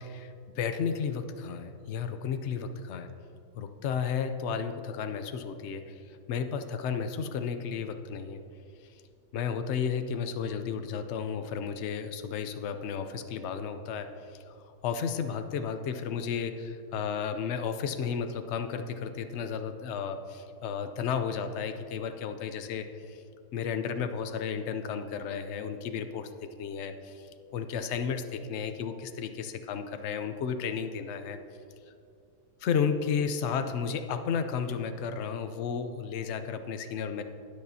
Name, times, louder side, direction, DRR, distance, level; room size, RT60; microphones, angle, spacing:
voice 1, 0.0-3.1 3.6-8.4 8.8-9.0 9.3-23.2 23.5-26.3 26.6-31.4 32.6-37.2, left 6 dB, 80° left, 8 dB, 0.6 m, -33 dB
19.0 x 6.7 x 2.7 m, 2.4 s
omnidirectional pair, 1.8 m